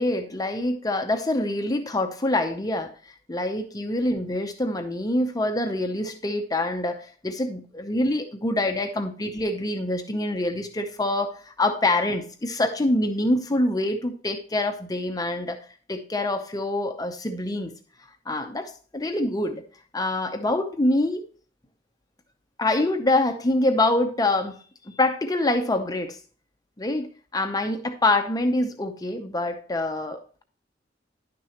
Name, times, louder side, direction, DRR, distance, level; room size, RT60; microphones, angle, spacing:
voice 1, 0.0-2.9 3.3-17.7 18.3-19.6 19.9-21.2 22.6-24.6 24.9-26.2 26.8-30.4, left 2 dB, 20° left, 6 dB, 0.7 m, -25 dB
10.5 x 6.0 x 2.9 m, 0.41 s
head